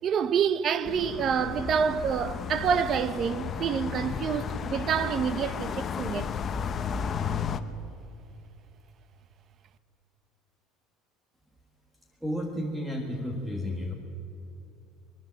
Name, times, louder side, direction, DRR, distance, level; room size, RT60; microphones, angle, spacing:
voice 1, 0.0-6.3, right 7 dB, 30° right, 0.8 m, -27 dB
sound 1, 0.9-7.6, left 6 dB, 25° left, 0.9 m, -33 dB
voice 2, 12.2-13.9, left 1 dB, 5° right, 1.6 m, -32 dB
23.5 x 22.0 x 7.6 m
cardioid pair, 170°, 0 cm